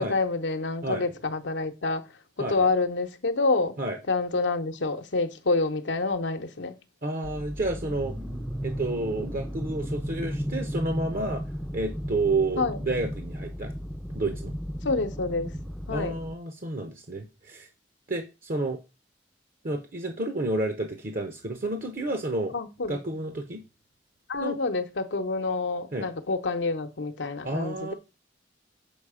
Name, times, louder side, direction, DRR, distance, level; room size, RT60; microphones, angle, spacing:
voice 1, 0.0-2.1 2.5-3.8 4.1-6.7 12.6-12.8 14.8-15.5 15.9-16.2 22.5-23.0 24.3-27.9, left 3 dB, 85° left, 0.8 m, -27 dB
voice 2, 2.4-2.7 3.8-4.0 7.0-8.1 8.6-11.4 11.7-13.7 14.1-14.5 15.9-17.7 18.1-18.8 19.6-22.5 22.9-23.6 24.4-24.6 25.9-26.1 27.4-27.9, right 2 dB, 50° right, 0.9 m, -30 dB
sound 1, 7.2-16.3, equal, ahead, 0.5 m, -34 dB
7.2 x 4.9 x 4.9 m
head